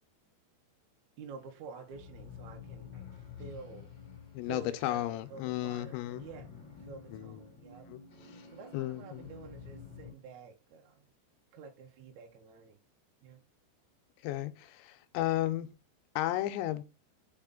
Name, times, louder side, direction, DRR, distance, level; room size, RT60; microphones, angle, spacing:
voice 1, 1.2-3.9 4.4-6.4 6.8-7.9 8.5-11.1 11.5-12.8 13.2-13.4, right 5 dB, 85° right, 1.6 m, -49 dB
sound 1, 1.4-10.1, left 6 dB, 40° left, 1.5 m, -50 dB
voice 2, 4.3-6.2 7.1-7.4 7.9-8.0 8.7-9.3 14.2-14.5 14.8-15.7 16.2-16.8, left 15 dB, 85° left, 2.8 m, -33 dB
5.5 x 5.0 x 3.7 m
omnidirectional pair, 5.2 m